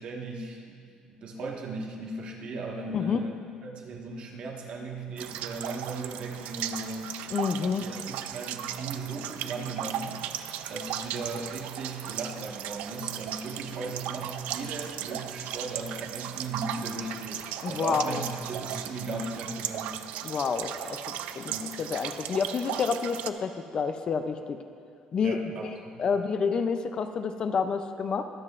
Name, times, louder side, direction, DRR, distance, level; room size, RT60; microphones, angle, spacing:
voice 1, 0.0-7.3 7.6-10.2 10.7-20.0 21.5-21.8 25.2-26.1, right 3 dB, 50° right, 0 dB, 1.4 m, -37 dB
sound 1, 5.2-23.3, right 11 dB, 85° right, 0.4 m, -37 dB
voice 2, 7.3-7.8 17.6-18.2 20.2-21.5 21.8-24.6 25.1-28.2, left 5 dB, 35° left, 8 dB, 0.4 m, -29 dB
23.0 x 7.6 x 2.5 m, 2.3 s
cardioid pair, 160°, 2 cm